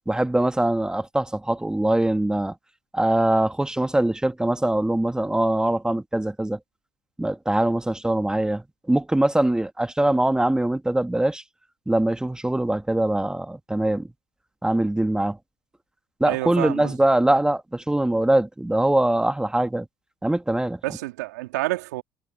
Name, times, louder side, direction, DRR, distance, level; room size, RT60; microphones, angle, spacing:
voice 1, 0.1-2.5 2.9-6.6 7.2-11.4 11.9-14.1 14.6-15.4 16.2-19.9 20.2-20.8, right 1 dB, 10° right, 1.8 m, -22 dB
voice 2, 16.2-16.9 20.8-22.0, right 19 dB, 85° right, 3.1 m, -28 dB
hypercardioid pair, 70°, 9 cm